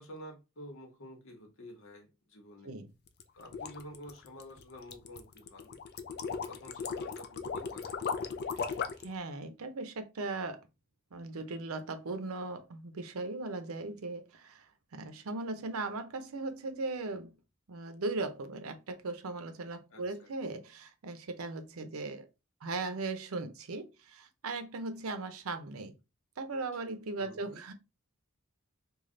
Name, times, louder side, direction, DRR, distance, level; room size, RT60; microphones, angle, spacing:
voice 1, 0.0-2.7 3.3-5.8 6.5-7.9 19.9-20.3 27.2-27.6, equal, 65° left, 1.1 m, -50 dB
sound 1, 3.1-9.1, left 5 dB, 50° left, 0.5 m, -37 dB
voice 2, 8.6-10.6 11.1-14.7 14.9-17.3 17.7-22.3 22.6-25.9 26.4-27.7, right 3 dB, 70° right, 0.6 m, -38 dB
3.2 x 2.3 x 3.7 m
head